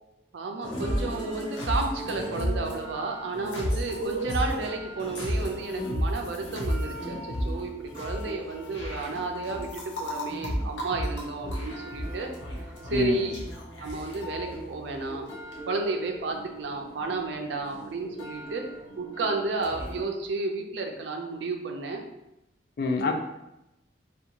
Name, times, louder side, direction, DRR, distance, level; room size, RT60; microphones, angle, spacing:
voice 1, 0.3-12.3 12.8-13.4 13.8-15.2 15.7-18.6 19.0-22.0, right 3 dB, 75° right, 3 dB, 0.4 m, -32 dB
sound 1, 0.6-20.1, equal, 85° left, 0.7 m, -34 dB
voice 2, 12.9-13.3 22.8-23.1, left 3 dB, 55° left, 4 dB, 0.3 m, -26 dB
2.5 x 2.2 x 2.8 m, 0.91 s
head